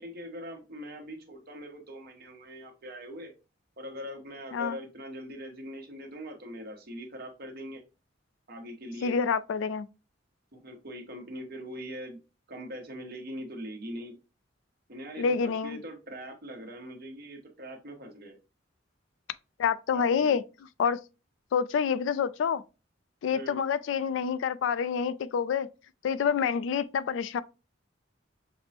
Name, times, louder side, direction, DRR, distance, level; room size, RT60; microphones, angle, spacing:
voice 1, 0.0-3.3 3.8-7.8 8.5-9.1 10.5-12.2 12.5-14.2 14.9-18.4 19.9-20.4 23.3-23.6, equal, 55° right, 1.0 m, -42 dB
voice 2, 9.0-9.9 15.2-15.8 19.6-20.4 20.8-21.0 21.5-22.6 23.2-25.7 26.0-27.4, left 6 dB, 75° left, 0.3 m, -27 dB
5.9 x 2.0 x 2.7 m
head